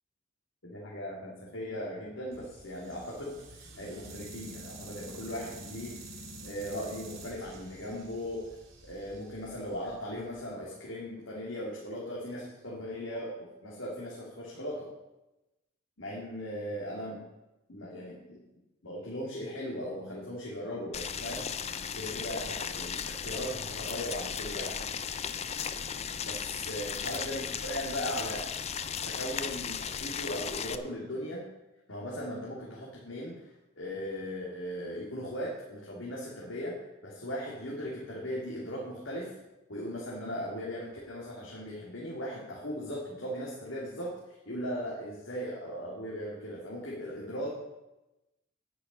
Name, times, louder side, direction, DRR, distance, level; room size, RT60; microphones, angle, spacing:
voice 1, 0.6-5.9 6.4-8.5 8.8-14.9 16.0-17.2 17.7-18.4 18.8-21.4 21.9-24.8 26.2-28.4 29.0-31.4 31.9-36.7 37.0-39.3 39.7-44.1 44.5-47.6, equal, 90° left, -5 dB, 2.7 m, -38 dB
sound 1, 2.3-10.4, right 1 dB, 90° right, 3.0 m, -48 dB
Boiling, 20.9-30.8, left 7 dB, 35° left, 0.5 m, -36 dB
10.5 x 10.0 x 5.4 m, 0.98 s
head